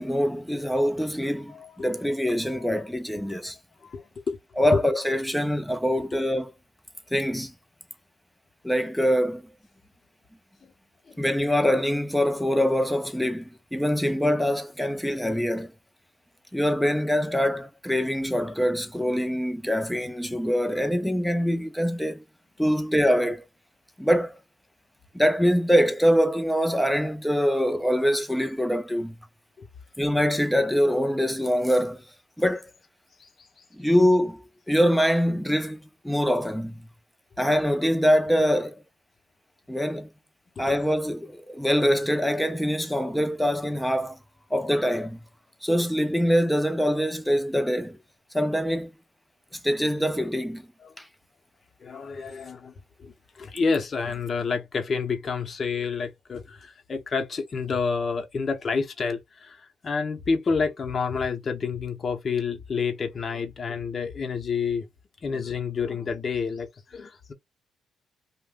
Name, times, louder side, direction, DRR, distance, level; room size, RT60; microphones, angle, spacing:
voice 1, 0.0-3.6 4.6-6.5 7.1-7.5 8.6-9.4 11.2-15.7 16.5-22.2 22.6-23.4 24.0-24.4 25.1-29.2 30.0-32.0 32.4-32.7 33.7-36.9 37.4-38.8 39.7-40.1 40.6-44.2 44.5-45.2 45.6-48.0 48.3-48.9 49.5-50.7 51.0-51.1, equal, ahead, 0.6 m, -24 dB
voice 2, 1.5-1.9 2.5-2.7 3.3-3.4 3.8-4.4 4.7-4.8 11.1-11.2 29.6-29.7 33.2-33.3 50.8-50.9 51.8-64.9 65.2-67.3, left 5 dB, 40° left, 0.9 m, -29 dB
2.6 x 2.2 x 3.6 m
cardioid pair, 90°, 0 cm